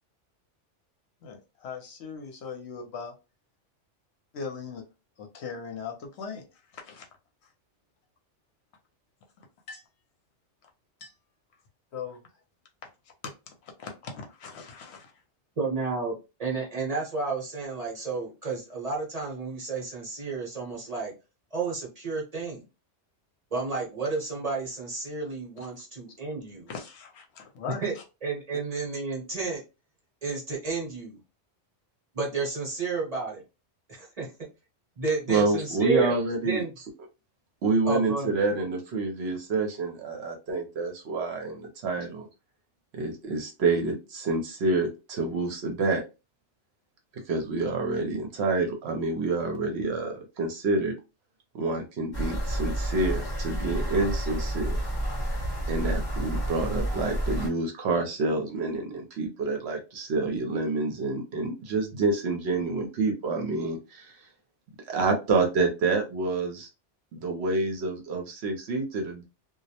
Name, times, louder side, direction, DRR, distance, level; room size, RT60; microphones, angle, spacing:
voice 1, 1.2-3.1 4.3-4.8 5.2-6.5 6.7-7.0 9.7-9.8 11.0-11.1 11.9-12.2 13.5-15.1 26.7-27.8, left 5 dB, 70° left, 3 dB, 0.9 m, -39 dB
voice 2, 15.6-21.1 21.5-22.6 23.5-26.7 27.8-27.9 28.2-29.6 30.2-31.2 32.1-33.4 33.9-34.3 35.0-36.1 36.4-36.7 37.9-38.4, right 4 dB, 35° right, -2 dB, 0.8 m, -31 dB
voice 3, 35.3-36.6 37.6-42.3 42.9-46.0 47.1-50.9 51.5-54.8 55.7-64.2 64.9-66.7 67.1-69.2, right 3 dB, 65° right, 3 dB, 0.8 m, -28 dB
sound 1, 52.1-57.5, right 1 dB, 25° left, 0.7 m, -30 dB
2.3 x 2.0 x 2.7 m, 0.28 s
omnidirectional pair, 1.2 m